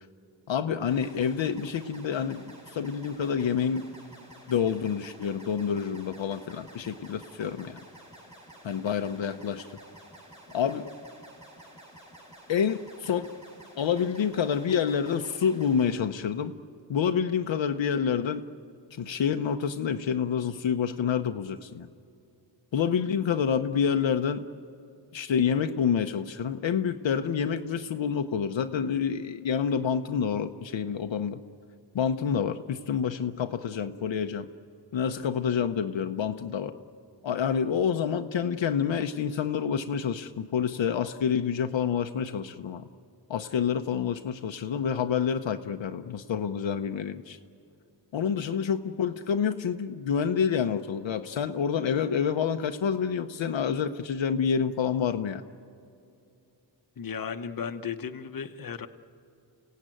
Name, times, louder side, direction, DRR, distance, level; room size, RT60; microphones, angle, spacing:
voice 1, 0.5-3.9 4.5-7.8 8.6-9.7 10.5-10.9 12.5-13.3 13.8-16.5 16.9-18.4 18.9-21.9 22.7-24.4 25.1-31.4 31.9-34.5 34.9-36.7 37.2-42.9 43.3-47.4 48.1-55.4, left 7 dB, 75° left, 7 dB, 0.8 m, -28 dB
sound 1, 0.9-15.9, right 1 dB, 15° right, 4.1 m, -51 dB
voice 2, 57.0-58.9, left 7 dB, 45° left, 8 dB, 1.0 m, -35 dB
29.0 x 17.0 x 9.1 m, 2.5 s
wide cardioid pair, 90°, 46 cm